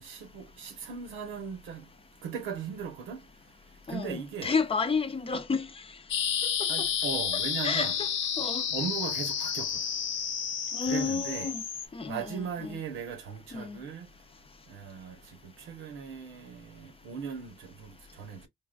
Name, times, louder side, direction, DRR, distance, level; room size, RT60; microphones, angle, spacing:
voice 1, 0.0-1.8 2.2-3.2 3.9-4.5 6.7-8.0 8.7-9.7 10.9-11.5 12.1-14.1 14.7-15.2 15.4-18.5, right 6 dB, 90° right, 1.0 m, -38 dB
voice 2, 3.9-5.8 6.4-6.5 6.8-6.9 7.3-8.1 8.4-8.6 10.7-11.6 11.9-12.8 13.5-13.8, left 5 dB, 30° left, 0.6 m, -31 dB
sound 1, 6.1-11.9, left 8 dB, 75° left, 0.8 m, -31 dB
3.8 x 2.3 x 2.4 m
cardioid pair, 90°, 20 cm